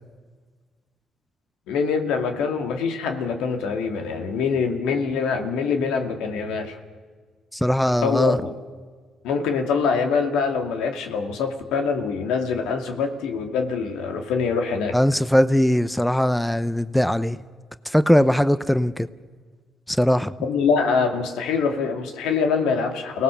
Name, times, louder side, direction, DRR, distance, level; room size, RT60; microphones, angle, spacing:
voice 1, 1.7-6.8 8.0-8.5 9.2-15.0 20.4-23.2, left 5 dB, 85° left, 2.4 m, -24 dB
voice 2, 7.5-8.4 14.9-17.4 17.9-19.1 19.9-20.3, equal, 5° left, 0.9 m, -20 dB
29.0 x 18.5 x 7.0 m
supercardioid pair, 65°, 0 cm